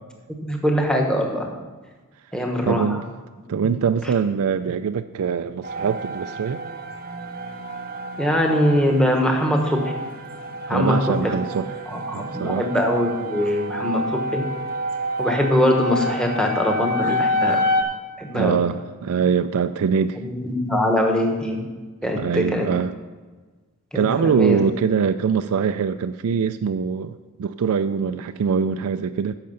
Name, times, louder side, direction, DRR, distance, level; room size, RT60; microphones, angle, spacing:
voice 1, 0.4-1.5 2.3-3.0 8.2-9.9 10.7-11.0 11.5-11.6 11.9-14.0 14.3-14.4 15.2-17.6 18.2-18.6 20.2-21.6 22.0-22.7 23.9-24.6, equal, 5° left, 1 dB, 1.2 m, -22 dB
voice 2, 2.7-3.0 3.5-6.6 10.7-11.7 12.1-12.7 18.3-20.2 22.1-22.9 23.9-29.3, right 6 dB, 80° right, 9 dB, 0.4 m, -23 dB
sound 1, 5.6-17.8, equal, 40° right, 0.8 m, -28 dB
10.5 x 6.7 x 5.4 m, 1.3 s
head